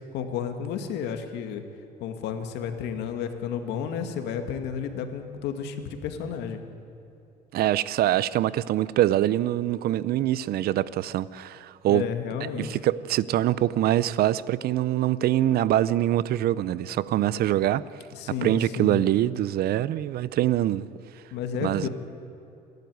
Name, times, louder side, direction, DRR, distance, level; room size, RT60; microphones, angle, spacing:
voice 1, 0.1-1.6 2.0-6.6 11.9-12.7 18.1-19.1 21.3-21.9, left 7 dB, 85° left, 2.1 m, -32 dB
voice 2, 7.5-12.0 12.4-17.8 18.4-20.9 21.6-21.9, right 13 dB, 65° right, 0.7 m, -24 dB
27.5 x 12.0 x 9.5 m
cardioid pair, 110°, 17 cm